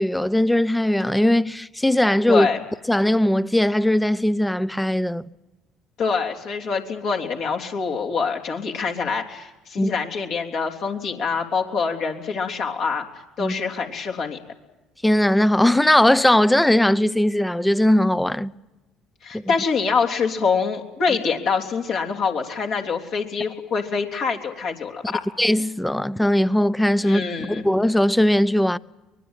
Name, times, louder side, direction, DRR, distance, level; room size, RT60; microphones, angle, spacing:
voice 1, 0.0-2.5 2.9-5.3 9.8-9.9 13.4-13.6 15.0-18.5 19.3-19.5 25.0-25.1 25.4-28.8, left 1 dB, 5° left, 0.8 m, -19 dB
voice 2, 2.3-2.6 6.0-13.1 13.4-14.4 19.2-25.2 27.0-27.7, left 5 dB, 60° left, 3.5 m, -25 dB
24.0 x 20.5 x 9.1 m
hypercardioid pair, 65°, 0 cm